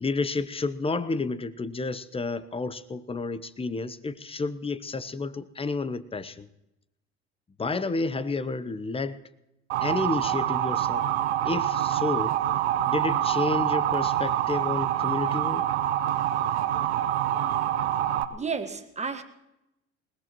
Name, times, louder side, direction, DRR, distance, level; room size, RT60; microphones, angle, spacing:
voice 1, 0.0-6.5 7.6-9.2 9.8-11.1 11.4-12.4 12.8-15.7, left 3 dB, 15° left, 15 dB, 0.8 m, -30 dB
Motor vehicle (road) / Siren, 9.7-18.2, right 11 dB, 85° right, 0.8 m, -26 dB
voice 2, 18.3-19.2, right 5 dB, 20° right, 7 dB, 1.7 m, -32 dB
21.0 x 19.0 x 3.1 m, 0.89 s
hypercardioid pair, 75°, 33 cm